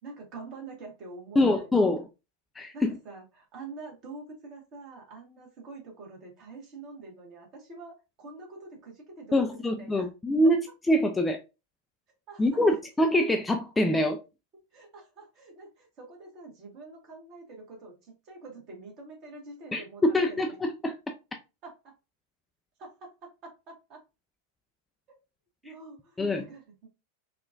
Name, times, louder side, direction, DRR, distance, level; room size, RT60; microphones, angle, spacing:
voice 1, 0.0-1.7 2.7-10.1 12.3-12.5 14.7-20.5 21.6-21.9 22.8-24.0 25.6-26.9, right 3 dB, 40° right, 1.2 m, -46 dB
voice 2, 1.4-2.1 2.6-3.0 9.3-11.4 12.4-14.2 19.7-21.0 26.2-26.5, left 1 dB, 10° left, 0.4 m, -25 dB
3.6 x 2.3 x 2.4 m
figure-of-eight pair, 90°, 0 cm